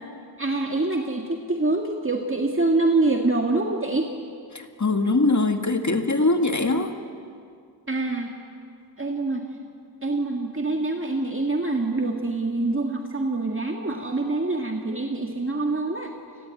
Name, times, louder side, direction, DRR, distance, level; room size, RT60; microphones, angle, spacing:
voice 1, 0.4-4.1 7.9-8.3 9.0-9.5 10.0-16.1, right 2 dB, 30° right, 2 dB, 2.0 m, -25 dB
voice 2, 4.5-6.9, left 2 dB, 40° left, 6 dB, 2.0 m, -22 dB
28.0 x 21.0 x 9.1 m, 2.3 s
wide cardioid pair, 80°, 43 cm